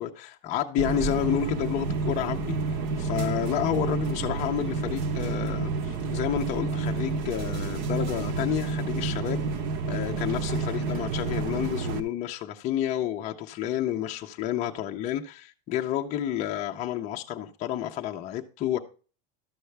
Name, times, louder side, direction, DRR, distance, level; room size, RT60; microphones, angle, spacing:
voice 1, 0.0-2.6 3.0-9.4 9.9-18.8, left 11 dB, 20° left, 0.6 m, -30 dB
sound 1, 0.8-12.0, right 4 dB, 45° right, 1.0 m, -29 dB
12.0 x 6.7 x 3.3 m
supercardioid pair, 180°, 33 cm